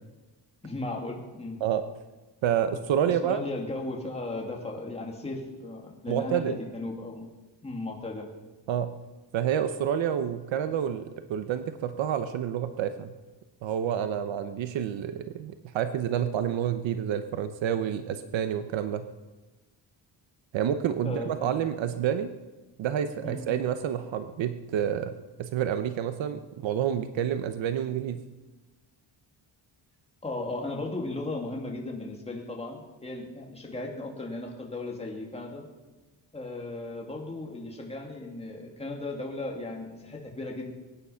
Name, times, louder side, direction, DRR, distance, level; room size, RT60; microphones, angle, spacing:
voice 1, 0.6-1.6 3.0-7.3 7.6-8.3 21.0-21.5 23.2-23.5 30.2-35.6 36.3-40.7, left 2 dB, 15° left, -1 dB, 2.5 m, -36 dB
voice 2, 2.4-3.4 6.1-6.6 8.7-8.9 9.3-11.0 11.3-13.1 13.6-19.0 20.5-22.3 22.8-25.1 25.4-28.2, right 9 dB, 85° right, 9 dB, 1.0 m, -28 dB
23.0 x 9.8 x 5.8 m, 1.2 s
wide cardioid pair, 175°, 44 cm